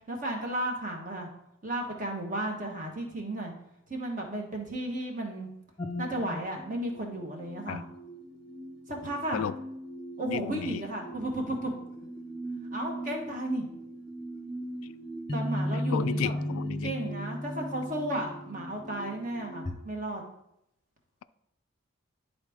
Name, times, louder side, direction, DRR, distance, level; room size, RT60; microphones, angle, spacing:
voice 1, 0.1-1.3 1.6-3.5 3.9-5.5 6.0-7.8 8.9-9.4 10.2-11.7 12.7-13.6 15.3-16.3 16.8-20.2, right 1 dB, 40° right, 1 dB, 1.3 m, -34 dB
sound 1, 5.8-19.7, equal, 20° left, 0.8 m, -37 dB
voice 2, 10.2-10.8 15.9-16.9, left 8 dB, 80° left, 15 dB, 0.3 m, -33 dB
11.0 x 4.0 x 3.5 m, 0.80 s
head